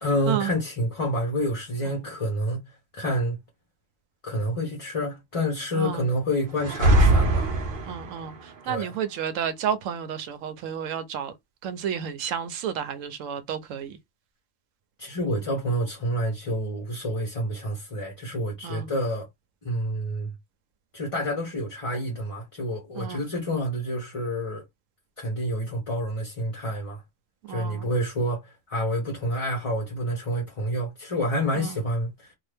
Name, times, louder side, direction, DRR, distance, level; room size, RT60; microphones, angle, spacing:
voice 1, 0.0-2.6 2.9-3.4 4.2-7.5 8.7-8.9 15.0-19.3 19.6-20.3 20.9-24.6 25.2-27.0 27.5-32.3, equal, 30° left, 0.9 m, -28 dB
sound 1, 6.6-8.2, right 1 dB, 55° right, 0.7 m, -21 dB
voice 2, 7.8-11.3 11.6-14.0 18.6-18.9 22.9-23.3 27.5-27.8 31.6-31.8, right 8 dB, 80° right, 1.0 m, -31 dB
2.7 x 2.5 x 3.3 m
omnidirectional pair, 1.3 m